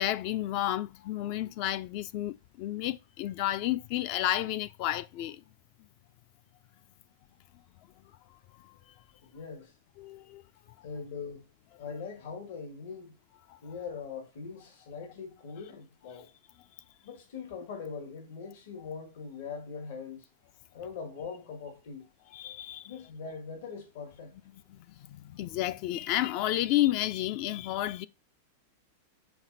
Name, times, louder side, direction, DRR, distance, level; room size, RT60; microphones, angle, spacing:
voice 1, 0.0-5.4 10.0-10.4 10.8-10.9 13.5-13.6 22.3-22.9 24.7-28.1, left 14 dB, 50° left, 0.4 m, -31 dB
voice 2, 9.2-9.8 10.8-11.5 11.8-13.1 13.6-16.3 17.0-20.3 20.7-22.1 22.8-24.4, left 5 dB, 70° left, 1.7 m, -41 dB
6.0 x 4.1 x 4.0 m
supercardioid pair, 140°, 0 cm